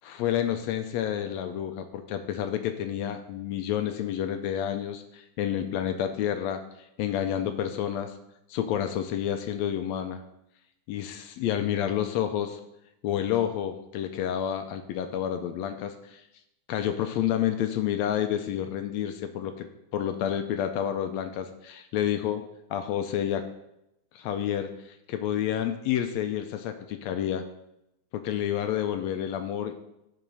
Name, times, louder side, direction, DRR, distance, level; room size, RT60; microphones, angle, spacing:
voice 1, 0.0-6.6 7.0-8.2 8.5-10.2 10.9-12.6 13.0-16.2 16.7-19.7 19.9-22.4 22.7-23.4 24.1-27.4 28.1-29.8, left 10 dB, 80° left, 8 dB, 1.6 m, -29 dB
10.0 x 4.1 x 5.3 m, 0.85 s
omnidirectional pair, 3.5 m